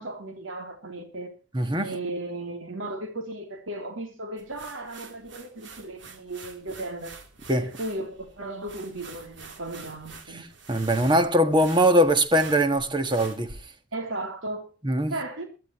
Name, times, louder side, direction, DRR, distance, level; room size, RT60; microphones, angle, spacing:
voice 1, 0.0-1.3 1.8-7.2 7.6-10.4 13.9-14.7 15.1-15.4, right 2 dB, 85° right, 3.2 m, -35 dB
voice 2, 1.5-1.9 7.5-7.7 10.3-13.6 14.8-15.2, right 1 dB, 25° right, 1.5 m, -22 dB
sound 1, 4.4-13.5, right 4 dB, 65° right, 3.3 m, -46 dB
22.0 x 13.0 x 3.0 m
head